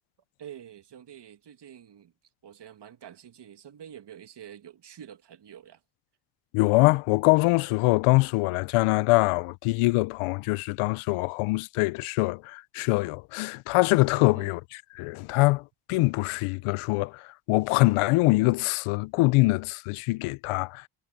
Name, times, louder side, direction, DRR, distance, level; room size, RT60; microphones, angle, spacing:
voice 1, 0.4-2.1 2.4-5.8 14.1-14.5, right 9 dB, 55° right, 2.2 m, -47 dB
voice 2, 6.5-14.6 15.0-20.8, left 23 dB, 80° left, 0.7 m, -24 dB
supercardioid pair, 60°, 49 cm